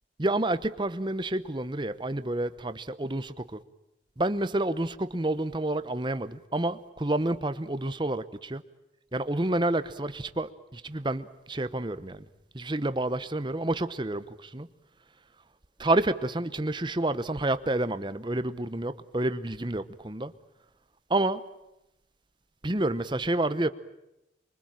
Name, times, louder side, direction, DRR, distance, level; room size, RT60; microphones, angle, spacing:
voice 1, 0.2-3.6 4.2-8.6 9.1-12.3 12.5-14.7 15.8-20.3 21.1-21.4 22.6-23.7, right 1 dB, 25° right, 0.9 m, -29 dB
26.0 x 23.5 x 9.0 m
head